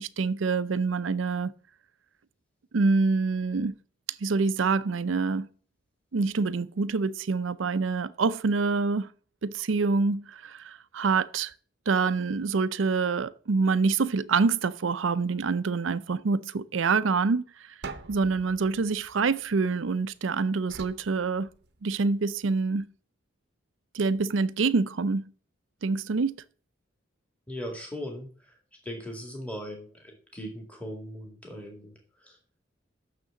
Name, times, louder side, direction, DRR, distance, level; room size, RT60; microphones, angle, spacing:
voice 1, 0.0-1.5 2.7-3.8 4.2-5.5 6.1-9.1 9.4-11.5 11.9-17.5 18.1-21.5 21.8-22.9 23.9-25.2 25.8-26.4, right 4 dB, 80° right, 0.5 m, -26 dB
sound 1, 17.8-20.0 20.7-22.1, right 4 dB, 55° right, 0.8 m, -45 dB
voice 2, 27.5-28.5 28.8-32.4, equal, 5° left, 2.1 m, -39 dB
6.7 x 6.4 x 7.2 m
head